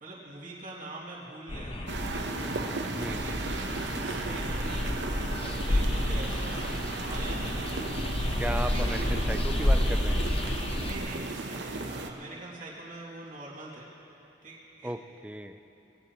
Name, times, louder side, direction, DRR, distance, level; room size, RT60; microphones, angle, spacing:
voice 1, 0.0-2.3 3.0-7.9 8.5-9.4 10.8-13.9 14.4-14.9, right 2 dB, 45° right, -6 dB, 2.7 m, -44 dB
sound 1, 1.5-11.0, left 1 dB, 30° left, 1.0 m, -30 dB
sound 2, 1.9-12.1, right 2 dB, 70° right, 1.0 m, -35 dB
voice 2, 2.9-3.3 8.4-10.3 14.8-15.0 15.2-15.6, right 1 dB, 5° right, 8 dB, 0.5 m, -35 dB
21.5 x 16.5 x 3.1 m, 2.9 s
head